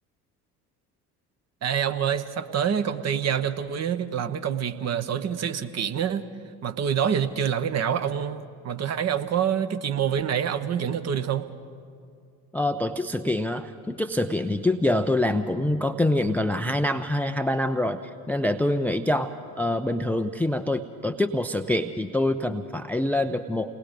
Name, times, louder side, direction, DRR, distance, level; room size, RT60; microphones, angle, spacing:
voice 1, 1.6-6.2 6.6-11.4, right 8 dB, 35° right, 10 dB, 1.1 m, -26 dB
voice 2, 12.5-23.8, left 1 dB, 5° left, 9 dB, 0.5 m, -25 dB
28.5 x 19.0 x 5.2 m, 2.3 s
figure-of-eight pair, 60°, 45 cm